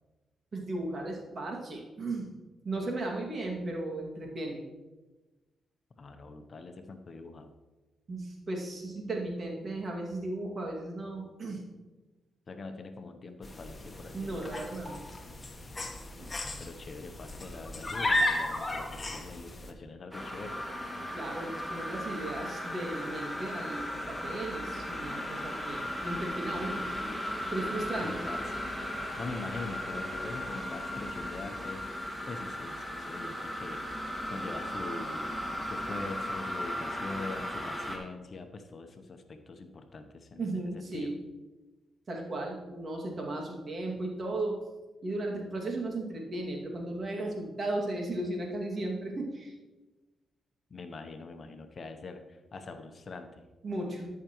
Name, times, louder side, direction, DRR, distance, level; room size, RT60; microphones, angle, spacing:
voice 1, 0.5-2.3 2.6-4.6 8.1-11.6 14.1-15.1 16.2-16.3 21.1-26.9 27.5-28.3 40.4-41.1 42.1-44.6 45.0-49.5 53.6-54.1, right 2 dB, 50° right, 0 dB, 2.3 m, -36 dB
voice 2, 6.0-7.5 12.5-14.6 16.4-20.6 28.0-28.6 29.2-35.3 35.6-41.2 50.7-53.4, left 3 dB, 50° left, 7 dB, 0.8 m, -43 dB
sound 1, 13.4-19.7, left 1 dB, 30° left, 1.3 m, -34 dB
sound 2, 20.1-38.0, equal, ahead, 2.0 m, -36 dB
13.0 x 5.8 x 3.1 m, 1.2 s
supercardioid pair, 50°, 0 cm